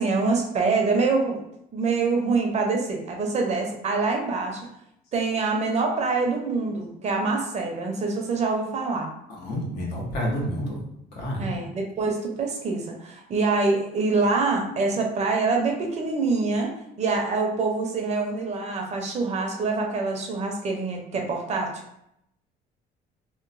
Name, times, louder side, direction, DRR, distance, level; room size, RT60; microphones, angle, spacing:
voice 1, 0.0-1.4 1.7-4.7 5.1-9.1 11.4-21.8, right 3 dB, 40° right, 2 dB, 0.5 m, -25 dB
voice 2, 9.3-10.8 11.1-11.6, equal, 75° left, -3 dB, 1.0 m, -29 dB
2.9 x 2.1 x 2.5 m, 0.77 s
cardioid pair, 110°, 17 cm